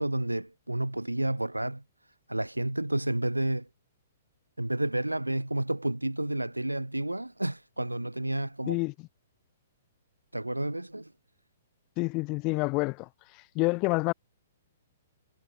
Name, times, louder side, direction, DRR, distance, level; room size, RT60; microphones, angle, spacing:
voice 1, 0.0-1.8 2.3-3.7 4.6-8.8 10.3-11.1, right 1 dB, 85° right, 0.5 m, -30 dB
voice 2, 12.0-13.1 13.5-14.1, left 27 dB, 30° left, 0.4 m, -27 dB
figure-of-eight pair, 115°, 0 cm